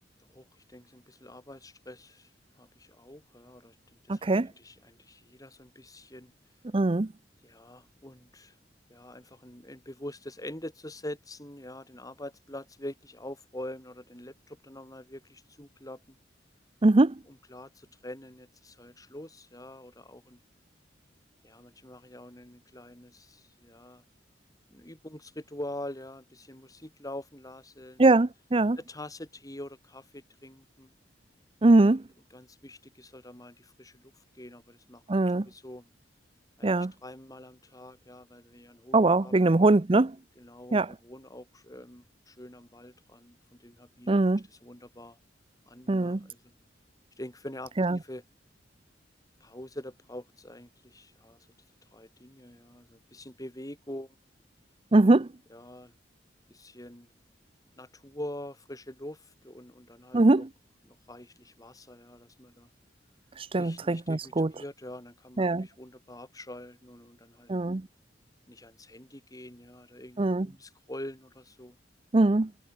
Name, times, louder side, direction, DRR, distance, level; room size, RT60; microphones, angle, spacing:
voice 1, 0.3-2.3 2.6-3.7 4.1-4.3 4.6-6.3 7.4-8.5 8.9-16.2 17.3-20.4 21.4-24.0 24.7-28.1 28.8-30.9 32.3-35.0 35.4-35.9 36.6-39.3 40.4-44.2 44.6-45.2 45.7-46.5 47.2-48.2 49.4-51.4 51.9-54.2 55.5-55.9 56.5-57.1 57.8-60.5 60.9-62.7 63.5-67.5 68.5-71.8, left 1 dB, 20° left, 4.8 m, -45 dB
voice 2, 4.1-4.5 6.7-7.1 16.8-17.2 28.0-28.8 31.6-32.0 35.1-35.5 36.6-36.9 38.9-40.2 40.7-40.9 44.1-44.4 45.9-46.3 47.8-48.0 54.9-55.3 60.1-60.5 63.4-64.5 65.4-65.7 67.5-67.9 70.2-70.5 72.1-72.5, right 2 dB, 30° right, 0.6 m, -22 dB
head